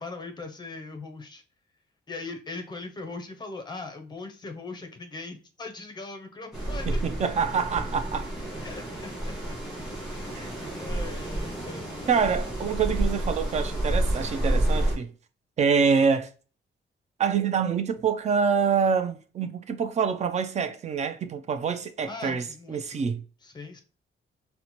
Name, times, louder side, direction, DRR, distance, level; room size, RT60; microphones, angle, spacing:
voice 1, 0.0-1.4 2.1-7.0 8.6-9.6 10.2-10.5 10.8-11.9 22.0-23.0 23.4-23.8, left 3 dB, 20° left, 0.6 m, -40 dB
sound 1, 6.5-15.0, right 1 dB, ahead, 1.5 m, -30 dB
voice 2, 6.9-8.3 10.4-10.5 12.1-15.1 15.6-16.3 17.2-23.2, right 6 dB, 35° right, 0.4 m, -26 dB
4.1 x 2.1 x 2.9 m
wide cardioid pair, 175°, 20 cm